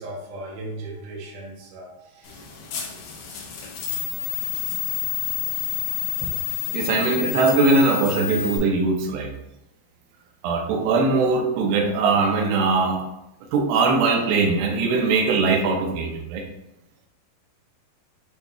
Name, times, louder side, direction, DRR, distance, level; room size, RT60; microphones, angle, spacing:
voice 1, 0.0-2.5, right 1 dB, 70° right, -2 dB, 2.3 m, -37 dB
sound 1, 2.3-8.6, left 12 dB, 80° left, 2.8 m, -29 dB
voice 2, 6.7-9.3 10.4-13.0 13.5-16.5, right 4 dB, 85° right, 3 dB, 2.7 m, -21 dB
7.8 x 2.9 x 2.3 m, 0.86 s
omnidirectional pair, 4.6 m